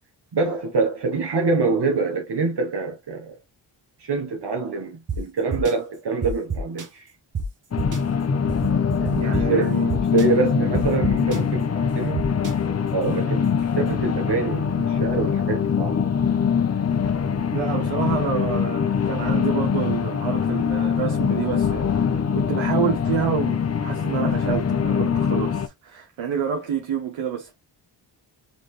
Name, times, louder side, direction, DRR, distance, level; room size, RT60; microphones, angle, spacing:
voice 1, 0.3-3.4 4.0-7.1 9.0-12.2 12.9-16.0, right 4 dB, 60° right, 1.3 m, -25 dB
sound 1, 5.1-5.2 5.5-5.7 6.2-6.8 7.3-7.4 7.8-8.0 8.5-9.4 9.9-10.2 10.7-11.4 12.2-12.5, right 5 dB, 40° right, 1.3 m, -28 dB
sound 2, 7.7-25.7, left 7 dB, 35° left, 0.7 m, -23 dB
voice 2, 9.2-9.9 17.5-27.5, right 8 dB, 75° right, 1.1 m, -28 dB
4.0 x 3.2 x 3.2 m
cardioid pair, 50°, 46 cm